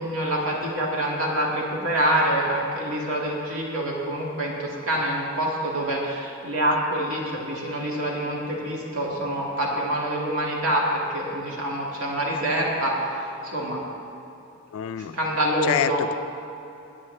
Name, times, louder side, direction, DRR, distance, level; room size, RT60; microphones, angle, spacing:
voice 1, 0.0-13.8 15.1-16.0, right 1 dB, 90° right, -3 dB, 2.0 m, -26 dB
voice 2, 14.7-15.2 15.6-16.1, left 9 dB, 80° left, 11 dB, 0.3 m, -26 dB
18.0 x 8.7 x 3.3 m, 2.8 s
head